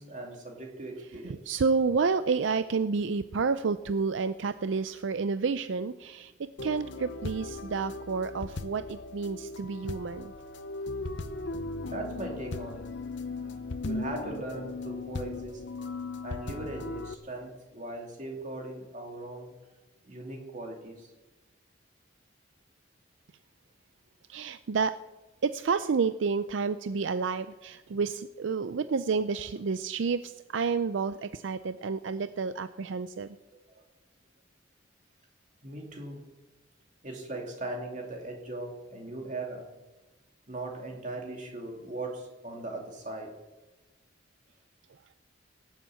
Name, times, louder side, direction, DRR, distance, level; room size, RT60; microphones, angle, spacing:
voice 1, 0.0-1.5 11.9-12.8 13.3-15.6 16.2-19.7 20.0-21.1 33.5-33.8 35.6-36.3 37.0-39.7 40.5-43.4, right 2 dB, 40° right, 1 dB, 2.8 m, -39 dB
voice 2, 1.2-10.3 24.3-24.9 25.4-33.3, right 5 dB, 75° right, 12 dB, 0.4 m, -30 dB
sound 1, 6.6-17.1, left 3 dB, 65° left, 0.8 m, -37 dB
18.0 x 7.4 x 8.4 m, 1.1 s
head